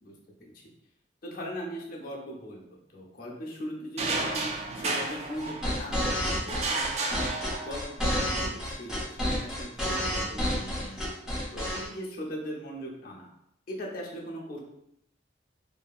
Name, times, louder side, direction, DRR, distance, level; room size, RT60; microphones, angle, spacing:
voice 1, 0.0-0.7 1.2-7.3 7.6-11.1 11.5-13.3 13.7-14.6, equal, 50° left, -1 dB, 0.6 m, -40 dB
sound 1, 4.0-6.0 6.5-8.0, right 3 dB, 35° right, 0.3 m, -32 dB
sound 2, 5.4-11.9, equal, 5° right, 0.6 m, -30 dB
2.7 x 2.6 x 2.3 m, 0.78 s
head